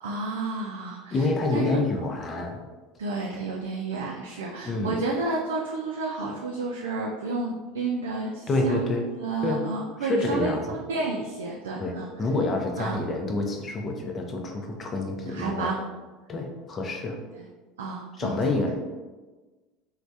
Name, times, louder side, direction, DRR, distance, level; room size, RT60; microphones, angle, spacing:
voice 1, 0.0-1.8 3.0-10.5 10.9-12.1 12.8-13.0 15.3-15.8 17.3-17.5 17.8-18.4, right 3 dB, 80° right, -2 dB, 0.3 m, -31 dB
voice 2, 1.1-2.6 4.7-5.0 8.5-9.1 9.4-9.6 10.0-10.6 11.8-15.7 16.3-17.2 18.2-18.7, left 2 dB, 35° left, 2 dB, 0.6 m, -27 dB
3.2 x 2.2 x 2.6 m, 1.3 s
hypercardioid pair, 80°, 0 cm